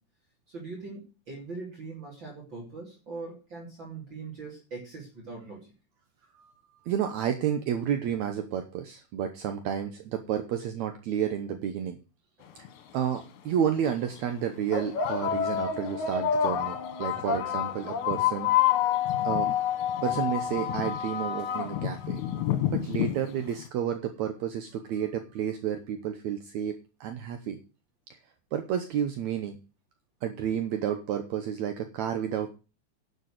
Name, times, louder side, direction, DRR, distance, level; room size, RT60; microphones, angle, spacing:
voice 1, 0.5-5.7 12.4-12.6 17.2-17.3, right 4 dB, 35° right, -3 dB, 3.9 m, -41 dB
voice 2, 6.9-12.0 12.9-18.5 19.2-19.6 20.0-22.2 22.7-27.6 28.5-29.6 30.2-32.5, right 9 dB, 70° right, 7 dB, 2.2 m, -31 dB
sound 1, 12.6-12.7 13.7-13.8 14.7-23.6, left 9 dB, 70° left, 2.5 m, -28 dB
11.5 x 6.9 x 6.5 m, 0.32 s
omnidirectional pair, 3.6 m